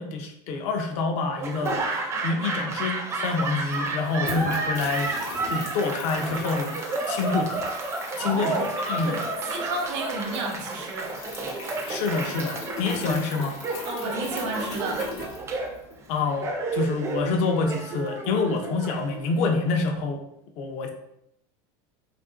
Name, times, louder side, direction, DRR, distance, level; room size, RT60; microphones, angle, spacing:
voice 1, 0.0-1.8 2.2-5.1 5.5-6.8 7.1-7.5 8.2-8.5 8.9-9.2 11.9-13.6 16.1-20.2 20.6-20.9, left 4 dB, 50° left, 4 dB, 0.5 m, -27 dB
Laughter / Applause, 1.4-19.5, right 2 dB, 20° right, 0.3 m, -31 dB
sound 1, 3.3-16.1, left 2 dB, 75° left, 0.9 m, -39 dB
voice 2, 8.2-8.7 9.0-11.2 13.8-15.0, right 3 dB, 85° right, 1 dB, 0.7 m, -31 dB
2.7 x 2.5 x 2.4 m, 0.78 s
supercardioid pair, 145°, 15 cm